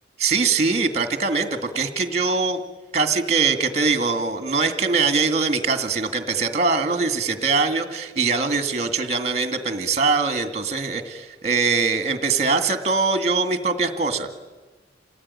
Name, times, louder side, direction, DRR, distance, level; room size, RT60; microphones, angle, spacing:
voice 1, 0.2-2.6 2.9-14.3, right 4 dB, 40° right, 8 dB, 2.2 m, -22 dB
28.0 x 19.0 x 9.8 m, 1.3 s
head